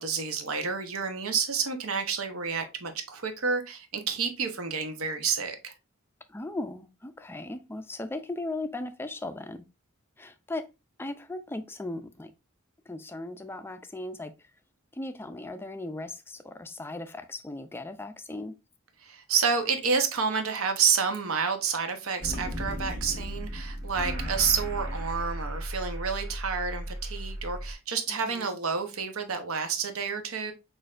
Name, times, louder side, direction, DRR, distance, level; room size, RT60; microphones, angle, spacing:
voice 1, 0.0-5.7 19.0-30.5, right 6 dB, 80° right, 0.8 m, -29 dB
voice 2, 6.3-9.7 10.2-10.7 11.0-12.3 12.9-14.5 14.9-18.6 28.1-28.6, left 2 dB, 10° left, 0.3 m, -37 dB
sound 1, 22.2-27.7, equal, 15° right, 1.4 m, -35 dB
6.2 x 2.5 x 2.4 m
head